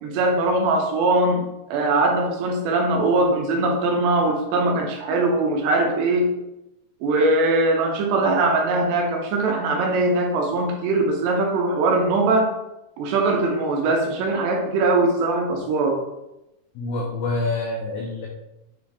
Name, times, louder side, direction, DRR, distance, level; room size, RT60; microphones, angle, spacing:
voice 1, 0.0-6.3 7.0-12.5 13.0-16.0, right 2 dB, 75° right, 1 dB, 2.9 m, -21 dB
voice 2, 16.8-18.3, left 2 dB, 85° left, -1 dB, 2.0 m, -26 dB
7.8 x 3.9 x 3.4 m, 0.92 s
omnidirectional pair, 5.2 m